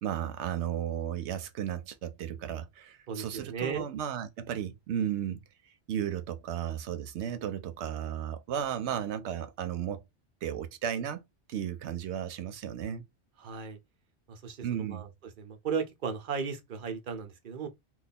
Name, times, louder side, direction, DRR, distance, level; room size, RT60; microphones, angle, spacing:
voice 1, 0.0-5.4 5.9-10.0 10.4-11.2 11.5-13.0 14.6-15.1, right 9 dB, 85° right, 0.9 m, -34 dB
voice 2, 3.1-3.9 13.4-13.8 14.3-15.1 15.4-17.7, right 6 dB, 55° right, 0.8 m, -35 dB
3.1 x 2.3 x 4.1 m
omnidirectional pair, 1.1 m